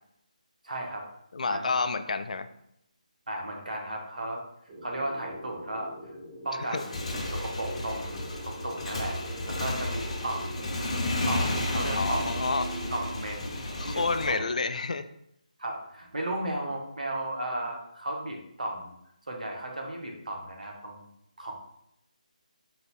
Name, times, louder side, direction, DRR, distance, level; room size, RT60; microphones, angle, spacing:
voice 1, 0.6-1.1 1.5-1.7 3.3-4.4 4.8-5.9 6.4-9.2 9.5-10.9 11.3-12.4 12.9-14.5 15.6-18.9 19.3-21.1 21.4-21.5, right 1 dB, 80° right, 1 dB, 1.1 m, -35 dB
voice 2, 1.3-2.5 6.7-6.8 11.9-12.9 13.8-15.0, left 4 dB, 65° left, 11 dB, 0.3 m, -29 dB
sound 1, 4.7-13.2, right 1 dB, 30° right, 0.8 m, -41 dB
Motorcycle / Engine, 6.6-14.3, left 1 dB, 50° left, 0.7 m, -32 dB
4.0 x 2.6 x 4.1 m, 0.76 s
figure-of-eight pair, 160°, 4 cm